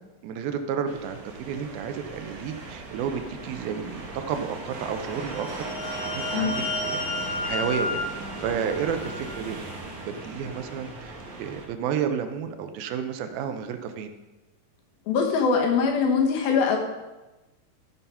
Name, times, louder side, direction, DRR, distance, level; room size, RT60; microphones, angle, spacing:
voice 1, 0.2-7.1 7.4-9.6 10.1-14.1, right 7 dB, 85° right, 7 dB, 2.6 m, -31 dB
sound 1, 0.9-11.7, right 2 dB, 50° right, 2.6 m, -38 dB
sound 2, 5.1-9.5, left 2 dB, 15° left, 1.1 m, -32 dB
voice 2, 15.1-16.8, left 5 dB, 80° left, 2 dB, 3.1 m, -22 dB
13.0 x 5.7 x 5.5 m, 1.1 s
omnidirectional pair, 4.2 m